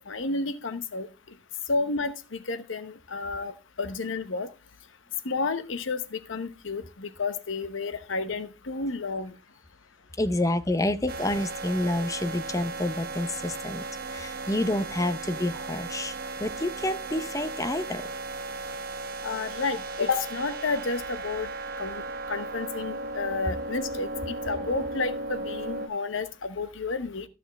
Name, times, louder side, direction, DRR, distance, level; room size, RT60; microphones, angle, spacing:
voice 1, 0.1-1.1 1.7-4.5 5.2-9.3 19.2-21.5 21.8-27.3, left 3 dB, 85° left, 12 dB, 0.9 m, -31 dB
voice 2, 10.2-13.8 14.1-18.0, left 1 dB, 15° left, 11 dB, 0.6 m, -28 dB
sound 1, 11.1-25.9, right 2 dB, 50° right, 1.0 m, -36 dB
14.0 x 6.1 x 3.4 m, 0.28 s
head